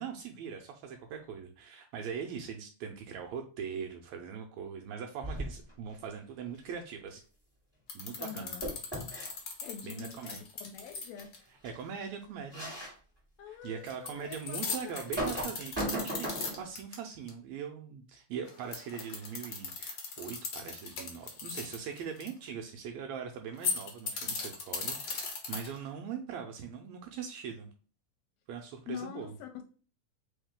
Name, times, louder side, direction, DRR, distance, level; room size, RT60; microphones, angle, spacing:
voice 1, 0.0-7.2 7.9-8.5 9.8-10.4 11.6-12.7 13.6-27.7 28.5-29.4, right 7 dB, 80° right, 3 dB, 1.8 m, -41 dB
sound 1, 5.2-5.7 8.6-9.3 11.2-11.3 11.6-11.8 12.5-12.9 13.5-13.6 14.9-16.7, right 1 dB, 5° right, 1.7 m, -36 dB
sound 2, 7.9-11.4 13.9-16.9 17.3-17.4 18.5-22.3 23.5-25.9, left 5 dB, 60° left, 1.0 m, -37 dB
voice 2, 8.2-8.7 9.6-11.3 13.4-15.2 28.9-29.6, left 8 dB, 80° left, 5 dB, 1.8 m, -45 dB
3.9 x 3.6 x 3.5 m, 0.39 s
omnidirectional pair, 3.4 m